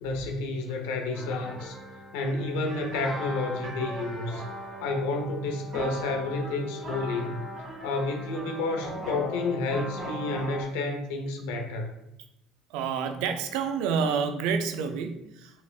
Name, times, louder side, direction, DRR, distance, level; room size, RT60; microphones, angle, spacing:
voice 1, 0.0-1.8 2.1-4.4 4.8-7.4 7.8-11.9, left 3 dB, 90° left, 4 dB, 0.8 m, -30 dB
sound 1, 1.1-10.6, equal, 45° right, 1.6 m, -38 dB
voice 2, 12.7-15.6, right 6 dB, 80° right, 7 dB, 0.5 m, -29 dB
5.4 x 3.4 x 2.4 m, 0.86 s
supercardioid pair, 95°, 0 cm